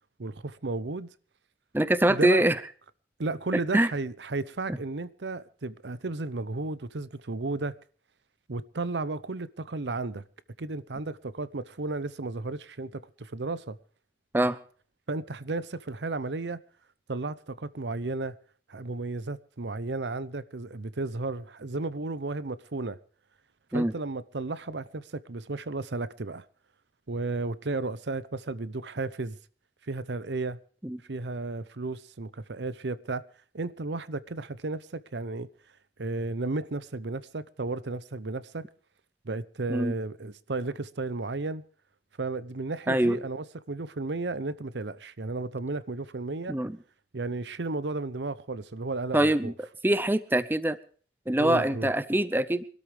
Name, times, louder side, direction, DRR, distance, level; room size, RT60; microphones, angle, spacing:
voice 1, 0.2-1.1 2.1-2.4 3.2-7.7 8.5-10.2 10.6-13.8 15.1-16.6 17.1-18.4 18.7-23.0 23.7-26.4 27.1-29.4 29.9-30.6 31.1-33.2 33.5-35.5 36.0-38.6 39.2-41.6 42.2-46.6 47.1-49.5 51.4-51.9, right 3 dB, 85° right, 0.8 m, -33 dB
voice 2, 1.7-2.6 3.7-3.9 14.3-14.6 23.7-23.9 30.8-31.0 39.7-39.9 42.9-43.2 46.5-46.8 49.1-49.5 49.8-50.8 51.3-52.6, right 1 dB, 10° right, 0.7 m, -24 dB
24.5 x 13.0 x 3.3 m
head